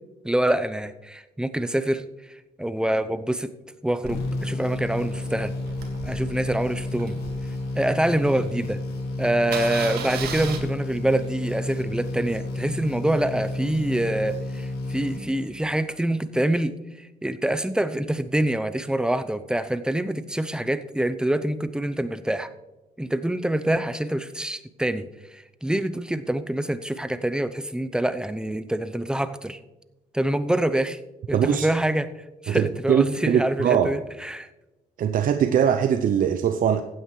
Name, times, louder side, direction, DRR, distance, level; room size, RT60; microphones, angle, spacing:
voice 1, 0.2-2.0 2.6-3.5 3.8-5.5 6.0-7.2 7.8-8.8 9.2-22.5 23.0-29.6 30.1-31.0 31.3-32.1 32.4-34.5, right 1 dB, 5° right, 12 dB, 0.7 m, -26 dB
Engine starting, 4.0-8.2 8.7-8.8 9.0-9.1 9.4-10.6, right 6 dB, 80° right, 1.9 m, -36 dB
sound 1, 4.1-15.8, left 2 dB, 90° left, 1.5 m, -31 dB
voice 2, 31.3-31.7 32.5-33.9 35.0-36.8, right 8 dB, 60° right, 8 dB, 0.6 m, -21 dB
15.5 x 9.0 x 3.2 m, 1.0 s
cardioid pair, 85°, 16 cm